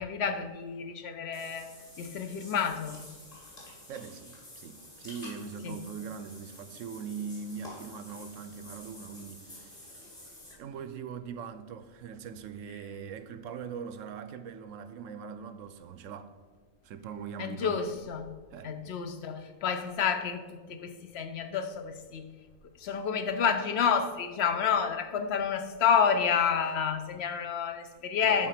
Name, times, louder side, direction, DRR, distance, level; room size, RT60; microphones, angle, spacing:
voice 1, 0.0-3.0 5.6-5.7 17.4-18.3 18.6-20.4 20.7-22.3 22.8-28.5, left 7 dB, 55° left, 0.9 m, -29 dB
Water / Bathtub (filling or washing), 1.3-10.5, left 1 dB, 30° left, 2.4 m, -49 dB
voice 2, 3.9-10.0 10.6-16.3 16.8-17.8 18.5-18.8 28.2-28.5, right 6 dB, 75° right, 0.9 m, -41 dB
9.9 x 4.0 x 5.8 m
omnidirectional pair, 1.4 m